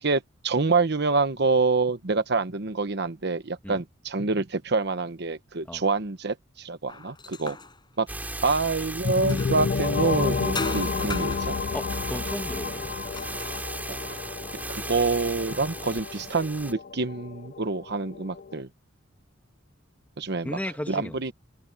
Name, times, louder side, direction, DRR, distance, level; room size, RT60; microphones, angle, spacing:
voice 1, 0.0-7.6 8.0-8.1 8.4-11.6 13.9-14.2 14.7-18.7 20.2-20.6 20.9-21.3, right 3 dB, 60° right, 1.1 m, -26 dB
sound 1, 6.9-9.9 10.5-14.4, left 3 dB, 25° left, 6.8 m, -39 dB
sound 2, 8.1-16.7, right 1 dB, 10° right, 4.4 m, -36 dB
sound 3, 9.0-18.6, left 5 dB, 45° left, 0.4 m, -31 dB
voice 2, 11.7-12.9 20.4-21.2, left 1 dB, 10° left, 1.9 m, -35 dB
head